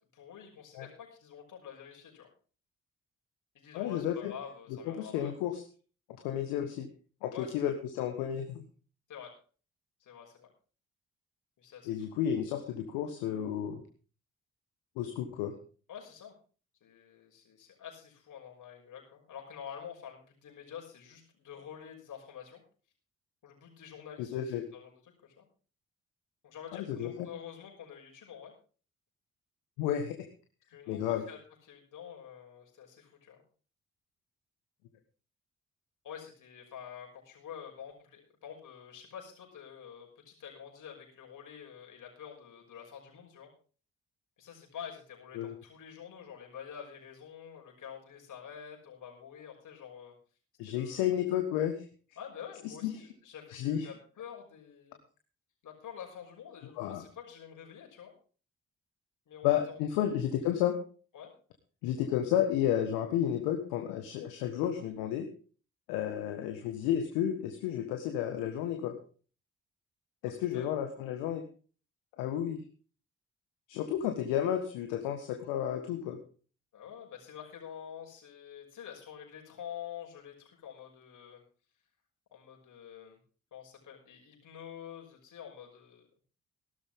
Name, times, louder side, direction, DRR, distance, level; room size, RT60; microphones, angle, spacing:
voice 1, 0.1-2.3 3.5-5.5 7.3-7.6 9.1-9.3 10.0-10.5 11.6-12.0 15.9-16.3 16.8-22.6 23.4-25.5 26.4-28.5 30.7-31.4 31.6-33.4 36.0-43.5 44.4-50.1 50.6-51.1 52.2-55.0 55.6-58.1 59.3-60.4 61.1-61.3 70.5-70.8 76.7-81.4 82.3-83.2 83.5-86.1, left 8 dB, 65° left, 0 dB, 6.2 m, -48 dB
voice 2, 3.7-4.3 5.0-5.6 6.2-6.9 7.2-8.6 11.9-13.8 15.0-15.5 24.3-24.6 26.7-27.3 29.8-30.1 30.9-31.2 45.3-45.5 50.6-51.8 52.6-52.9 53.5-53.9 56.8-57.0 59.4-60.7 61.8-65.3 65.9-68.9 70.2-71.4 72.2-72.6 73.7-76.2, left 10 dB, 85° left, 5 dB, 1.5 m, -32 dB
16.5 x 13.0 x 3.6 m, 0.39 s
hypercardioid pair, 40°, 33 cm